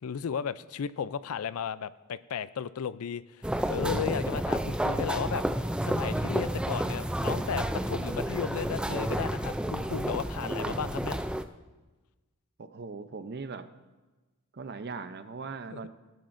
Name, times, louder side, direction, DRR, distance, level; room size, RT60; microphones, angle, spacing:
voice 1, 0.0-5.4 5.8-11.3 15.7-15.9, left 7 dB, 75° left, 16 dB, 0.4 m, -34 dB
sound 1, 3.4-11.4, right 1 dB, 5° right, 0.3 m, -30 dB
voice 2, 10.2-10.8 12.6-13.7 14.5-15.9, right 4 dB, 50° right, 11 dB, 0.6 m, -40 dB
18.5 x 11.5 x 2.6 m, 1.2 s
head